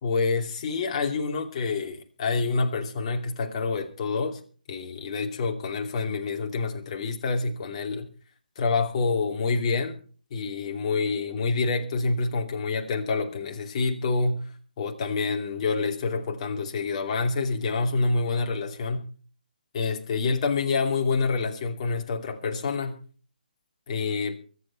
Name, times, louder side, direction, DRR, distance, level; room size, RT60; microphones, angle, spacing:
voice 1, 0.0-4.4 4.7-8.1 8.6-10.0 10.3-19.1 19.7-23.0 23.9-24.4, left 4 dB, 40° left, 2.7 m, -27 dB
24.0 x 8.5 x 4.3 m
figure-of-eight pair, 150°, 5 cm